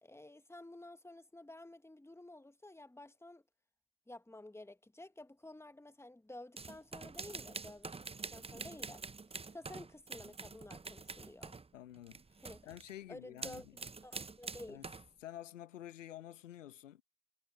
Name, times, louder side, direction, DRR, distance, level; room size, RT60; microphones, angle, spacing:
voice 1, 0.0-3.4 4.1-7.9 8.3-9.0 9.5-11.6 12.4-12.7 13.1-14.8, left 2 dB, 5° left, 1.8 m, -52 dB
sound 1, 6.6-11.7 11.9-12.9 13.4-15.1, right 4 dB, 15° right, 0.8 m, -46 dB
voice 2, 11.7-12.2 12.6-13.6 14.7-14.9 15.2-17.0, left 12 dB, 80° left, 1.3 m, -49 dB
figure-of-eight pair, 45°, 37 cm